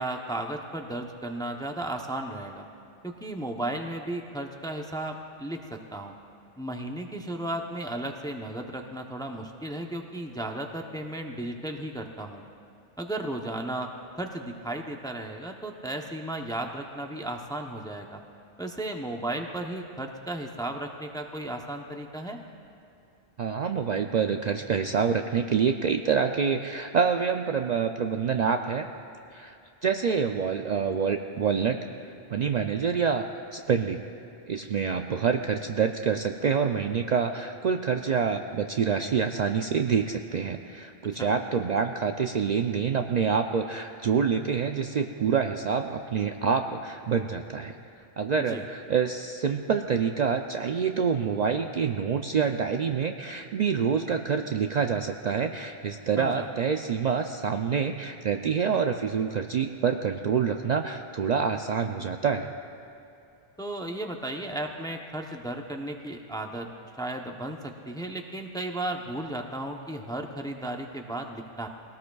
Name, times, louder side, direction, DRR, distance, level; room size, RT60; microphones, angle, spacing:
voice 1, 0.0-2.7 3.0-6.1 6.6-12.4 13.0-13.9 14.2-18.2 18.6-22.4 41.2-41.3 48.5-48.6 56.2-56.5 63.6-66.7 67.0-71.7, right 1 dB, 5° left, 2 dB, 0.6 m, -34 dB
voice 2, 23.4-28.9 29.3-29.6 29.8-31.8 32.0-33.3 33.5-34.1 34.5-62.5, right 6 dB, 55° right, 4 dB, 0.5 m, -27 dB
21.0 x 18.0 x 2.3 m, 2.5 s
omnidirectional pair, 1.0 m